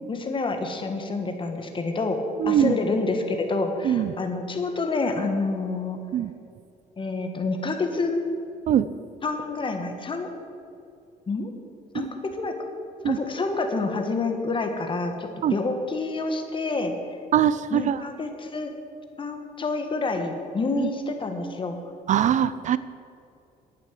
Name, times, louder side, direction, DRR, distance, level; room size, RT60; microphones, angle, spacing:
voice 1, 0.1-2.2 2.4-6.0 7.0-8.2 9.2-10.3 11.3-11.5 11.9-12.5 13.0-17.2 17.7-18.7 19.2-21.8, left 3 dB, 30° left, 5 dB, 1.7 m, -28 dB
voice 2, 2.4-2.8 3.8-4.1 6.1-6.3 8.7-8.9 13.0-13.2 15.4-15.5 17.3-18.0 20.8-20.9 22.1-22.8, right 10 dB, 50° right, 15 dB, 0.4 m, -22 dB
11.0 x 8.8 x 7.6 m, 2.6 s
cardioid pair, 105°, 16 cm